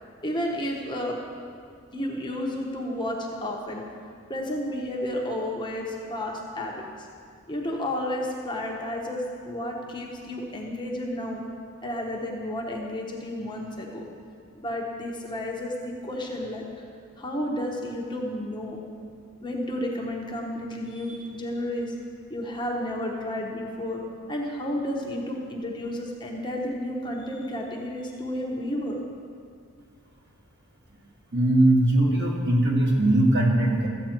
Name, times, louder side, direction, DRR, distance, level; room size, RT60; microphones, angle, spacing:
voice 1, 0.2-1.2 1.9-3.8 4.3-7.1 7.5-11.4 11.8-14.0 14.5-16.7 17.2-18.8 19.4-21.9 22.3-24.0 24.3-29.0, left 1 dB, 20° left, -1 dB, 1.0 m, -31 dB
voice 2, 31.3-33.9, right 1 dB, 50° right, -2 dB, 1.7 m, -20 dB
14.0 x 8.2 x 4.5 m, 2.3 s
head